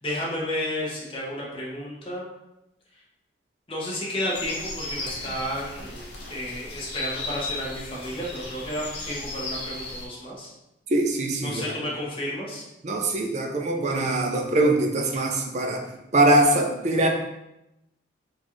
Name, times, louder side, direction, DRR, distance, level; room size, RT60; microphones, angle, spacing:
voice 1, 0.0-2.3 3.7-10.5 11.4-12.6, left 1 dB, 30° left, -4 dB, 0.8 m, -32 dB
sound 1, 4.3-10.1, left 2 dB, 65° left, 0.7 m, -35 dB
voice 2, 10.9-11.6 12.8-15.8 16.1-17.1, right 1 dB, 40° right, 3 dB, 0.4 m, -22 dB
3.9 x 2.4 x 3.0 m, 0.89 s
head